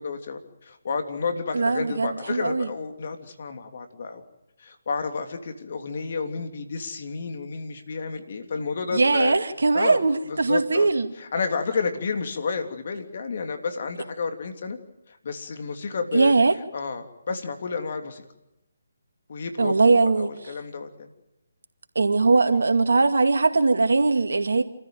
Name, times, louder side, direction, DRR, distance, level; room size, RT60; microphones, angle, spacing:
voice 1, 0.0-4.2 4.6-9.4 9.7-10.0 10.3-10.9 11.2-14.8 15.1-16.3 16.7-18.2 19.3-19.8 20.0-21.1, left 4 dB, 55° left, 3.1 m, -31 dB
voice 2, 1.5-2.7 8.9-11.1 16.1-16.5 19.6-20.3 22.0-24.6, right 3 dB, 75° right, 2.2 m, -20 dB
28.0 x 14.5 x 9.1 m
figure-of-eight pair, 150°, 0 cm